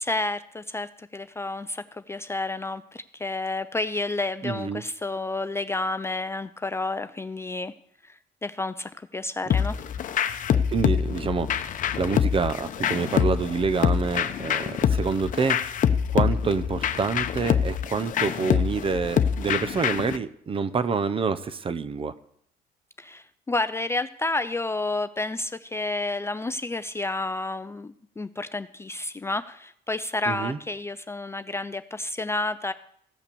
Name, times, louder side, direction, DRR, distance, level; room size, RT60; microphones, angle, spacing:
voice 1, 0.0-7.7 8.0-8.2 8.4-9.8 23.0-32.7, left 2 dB, 15° left, 12 dB, 0.4 m, -30 dB
voice 2, 4.4-4.8 10.5-15.7 16.1-22.1 30.3-30.6, right 5 dB, 35° right, 14 dB, 0.8 m, -27 dB
sound 1, 9.5-20.2, left 8 dB, 50° left, 0.8 m, -25 dB
16.0 x 5.8 x 6.9 m, 0.69 s
cardioid pair, 110°, 17 cm